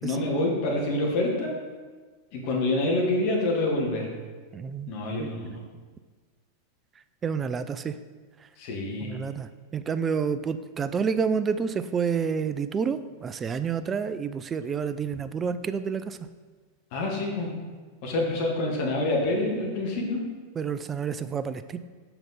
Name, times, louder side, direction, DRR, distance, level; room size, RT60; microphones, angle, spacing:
voice 1, 0.0-1.5 2.3-4.1 4.9-5.6 8.6-9.2 16.9-17.5 18.0-20.2, left 2 dB, 45° left, -1 dB, 1.5 m, -27 dB
voice 2, 4.5-4.9 5.2-5.3 7.2-8.0 9.0-16.2 20.6-21.8, right 6 dB, 20° right, 12 dB, 0.4 m, -29 dB
6.7 x 5.9 x 4.1 m, 1.4 s
figure-of-eight pair, 90°, 0 cm